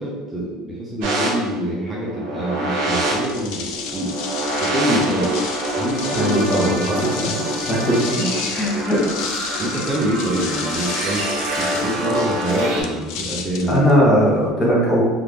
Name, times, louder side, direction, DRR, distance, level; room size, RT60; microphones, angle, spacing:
voice 1, 0.0-4.1 4.6-5.4 5.8-7.7 8.1-8.3 9.0-9.1 9.6-11.3 11.6-13.8, right 1 dB, 10° right, -4 dB, 0.5 m, -25 dB
sound 1, 1.0-12.8, right 1 dB, 65° right, 0.8 m, -26 dB
sound 2, 3.0-14.5, left 6 dB, 60° left, 0.4 m, -32 dB
voice 2, 6.1-7.4 7.7-7.8 8.1-8.2 8.5-9.0 13.7-15.0, equal, 15° left, -5 dB, 0.9 m, -19 dB
3.0 x 2.5 x 3.4 m, 1.3 s
cardioid pair, 175°, 0 cm